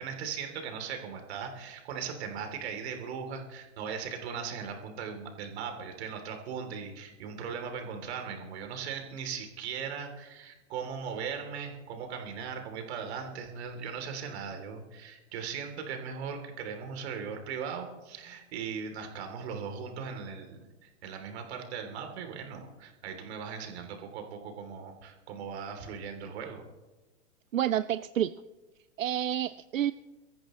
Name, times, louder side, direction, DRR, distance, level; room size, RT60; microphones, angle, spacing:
voice 1, 0.0-26.6, right 6 dB, 55° right, 4 dB, 3.2 m, -38 dB
voice 2, 27.5-28.4 29.0-29.9, right 11 dB, 85° right, 15 dB, 0.5 m, -29 dB
24.0 x 14.0 x 3.2 m, 1.2 s
hypercardioid pair, 115°, 38 cm